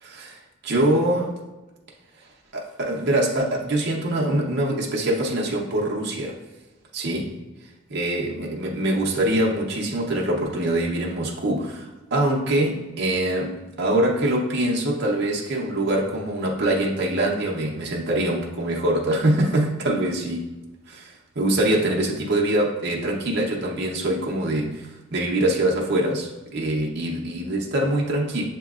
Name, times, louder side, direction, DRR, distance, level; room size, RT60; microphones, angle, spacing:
voice 1, 0.0-1.3 2.5-6.4 6.9-7.4 7.9-20.5 20.9-28.4, right 1 dB, 50° right, -2 dB, 0.6 m, -24 dB
6.9 x 2.9 x 2.4 m, 1.1 s
head